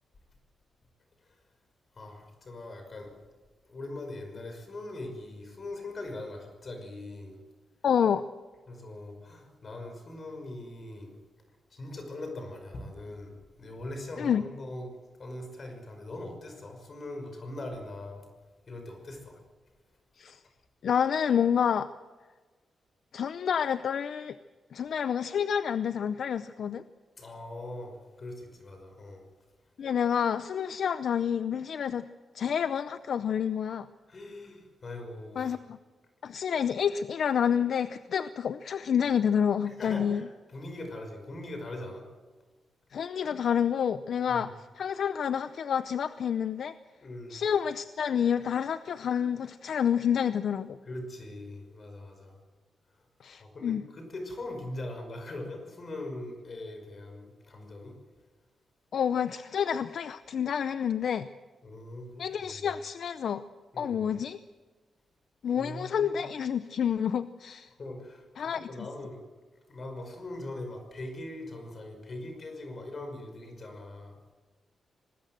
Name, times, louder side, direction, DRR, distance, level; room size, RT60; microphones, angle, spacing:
voice 1, 2.0-3.1 3.7-7.4 8.7-11.2 11.7-18.3 18.7-19.4 27.2-29.2 34.1-35.6 39.6-42.1 44.3-44.5 47.0-47.4 50.8-52.4 53.4-58.0 61.6-62.7 63.7-64.1 65.6-66.2 67.8-69.2 69.7-74.2, left 1 dB, 35° left, 5 dB, 5.5 m, -41 dB
voice 2, 7.8-8.3 14.2-14.4 20.2-20.4 20.8-21.9 23.1-24.4 24.7-26.8 29.8-32.1 32.3-33.9 35.4-35.8 36.2-40.2 42.9-46.7 47.3-50.8 53.2-53.8 58.9-61.3 62.2-63.4 63.8-64.4 65.4-67.7 68.4-68.7, left 8 dB, 60° left, 12 dB, 0.6 m, -28 dB
24.0 x 20.5 x 7.7 m, 1.4 s
wide cardioid pair, 150°, 0 cm